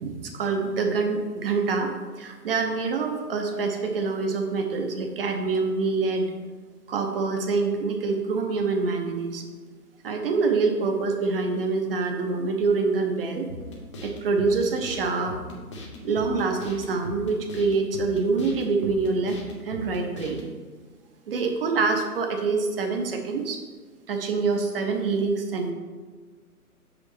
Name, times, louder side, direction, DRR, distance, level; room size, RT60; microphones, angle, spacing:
voice 1, 0.0-6.3 6.9-9.4 10.0-13.5 14.0-15.3 16.0-19.4 19.6-20.4 21.3-23.6 24.1-25.7, right 4 dB, 35° right, 4 dB, 0.9 m, -26 dB
sound 1, 13.5-20.5, left 2 dB, 20° left, 0.6 m, -40 dB
6.4 x 5.2 x 4.5 m, 1.5 s
figure-of-eight pair, 130°, 47 cm